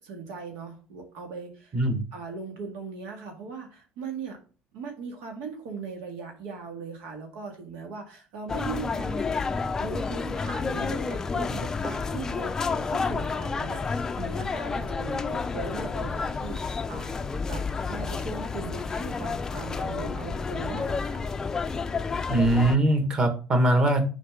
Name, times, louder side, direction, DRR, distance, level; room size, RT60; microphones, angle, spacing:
voice 1, 0.0-1.8 2.1-4.4 4.7-9.2 9.8-17.2 17.5-21.2, right 4 dB, 85° right, 2 dB, 2.0 m, -39 dB
voice 2, 1.7-2.0 22.3-24.0, right 1 dB, 25° right, 6 dB, 1.6 m, -22 dB
sound 1, 8.5-22.8, left 4 dB, 20° left, 0.4 m, -30 dB
6.7 x 5.2 x 3.7 m, 0.36 s
cardioid pair, 145°, 3 cm